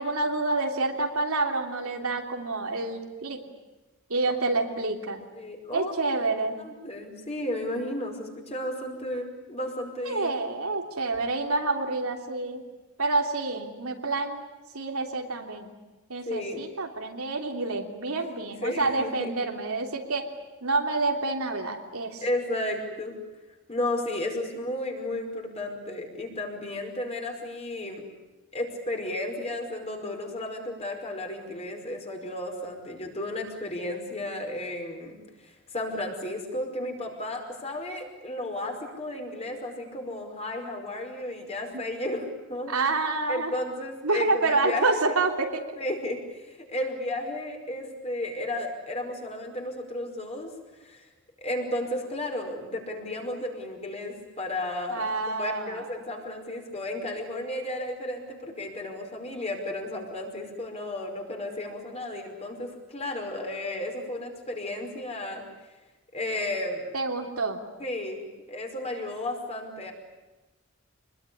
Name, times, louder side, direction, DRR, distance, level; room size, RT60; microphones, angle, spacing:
voice 1, 0.0-3.4 4.1-5.3 5.7-6.6 10.0-12.6 13.0-14.4 14.7-15.7 16.1-20.3 20.6-22.2 41.7-41.8 42.7-43.5 44.0-45.8 54.9-55.8 66.9-67.6, right 3 dB, 85° right, 3 dB, 3.2 m, -28 dB
voice 2, 5.3-6.0 6.6-10.3 16.3-16.7 18.6-19.3 22.2-23.1 23.7-28.1 28.5-42.7 43.3-44.9 45.8-50.5 50.8-51.1 51.4-65.4 66.1-66.9 67.8-68.2 68.5-69.9, left 1 dB, 30° left, 2 dB, 5.2 m, -33 dB
26.0 x 21.0 x 10.0 m, 1.1 s
head